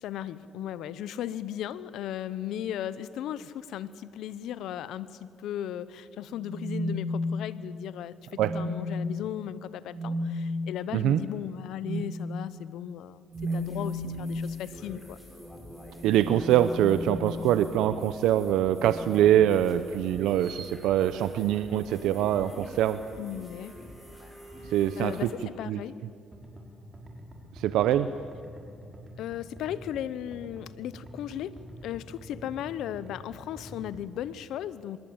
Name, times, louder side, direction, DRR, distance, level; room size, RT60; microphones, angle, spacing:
voice 1, 0.0-15.2 23.2-23.8 24.6-25.9 29.2-35.0, left 11 dB, 85° left, 16 dB, 0.9 m, -36 dB
sound 1, 6.4-7.7 8.3-9.1 9.9-10.4 11.8-12.2 13.3-14.3 15.8-17.7 18.8-19.2 20.4-20.7, left 1 dB, 50° right, 2.2 m, -34 dB
sound 2, 13.3-25.3, equal, 10° left, 6.7 m, -47 dB
voice 2, 16.0-23.0 24.7-25.3 25.7-25.8 27.5-28.1, right 11 dB, 90° right, 12 dB, 0.7 m, -24 dB
sound 3, 26.3-34.3, equal, 30° right, 5.5 m, -47 dB
25.0 x 20.5 x 8.9 m, 2.3 s
cardioid pair, 90°, 0 cm